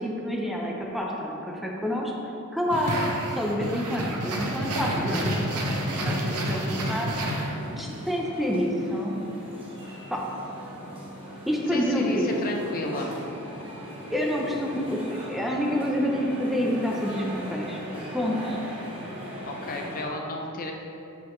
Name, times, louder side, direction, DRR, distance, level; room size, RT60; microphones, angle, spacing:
voice 1, 0.0-2.1 2.5-3.0 3.4-5.7 6.0-7.1 7.8-9.2 10.1-10.2 11.5-12.3 14.1-17.8 18.1-18.6, equal, ahead, -2 dB, 0.6 m, -28 dB
sound 1, 2.7-7.9, right 1 dB, 90° right, 0.9 m, -29 dB
sound 2, 5.7-20.0, equal, 25° right, 1.3 m, -39 dB
voice 2, 11.7-13.1 19.4-20.7, left 2 dB, 40° left, 1 dB, 0.6 m, -32 dB
7.0 x 6.2 x 3.2 m, 2.8 s
head